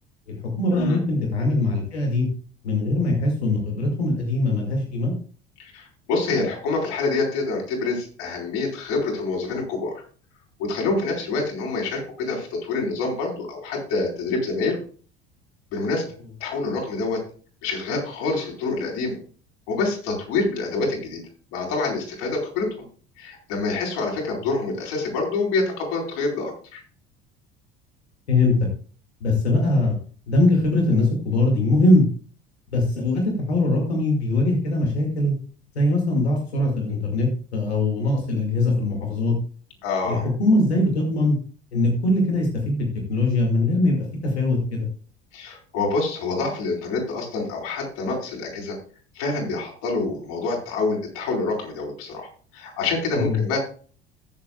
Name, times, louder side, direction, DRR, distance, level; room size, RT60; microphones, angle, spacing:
voice 1, 0.3-2.3 2.6-5.1 28.3-28.7 29.2-29.9 30.3-32.0 32.7-35.3 35.8-39.3 40.1-41.4 41.7-44.0 44.2-44.9 53.2-53.4, left 2 dB, 75° left, 0 dB, 2.3 m, -21 dB
voice 2, 5.6-10.0 10.6-14.8 15.7-16.0 16.4-17.2 17.6-19.2 19.7-21.2 21.5-22.8 23.2-26.8 39.8-40.3 45.3-48.8 49.1-53.6, left 3 dB, 60° left, -2 dB, 4.6 m, -26 dB
21.0 x 7.4 x 2.4 m, 0.42 s
figure-of-eight pair, 65°, 32 cm